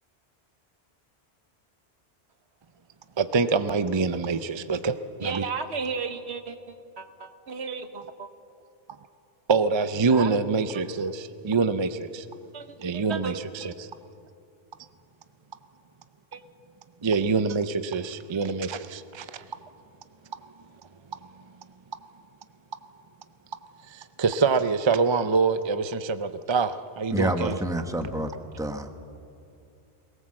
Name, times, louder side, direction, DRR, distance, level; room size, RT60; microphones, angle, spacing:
voice 1, 3.2-5.5 9.5-12.3 12.8-13.9 17.0-19.4 23.9-27.6, right 4 dB, 35° right, 11 dB, 0.5 m, -25 dB
voice 2, 5.2-6.6 7.0-8.3 10.1-10.3 12.5-12.7 12.9-13.4 16.3-16.4, right 5 dB, 85° right, 9 dB, 1.4 m, -33 dB
voice 3, 27.1-28.3 28.6-28.9, equal, 5° right, 7 dB, 1.0 m, -28 dB
21.5 x 18.5 x 7.6 m, 2.6 s
omnidirectional pair, 1.1 m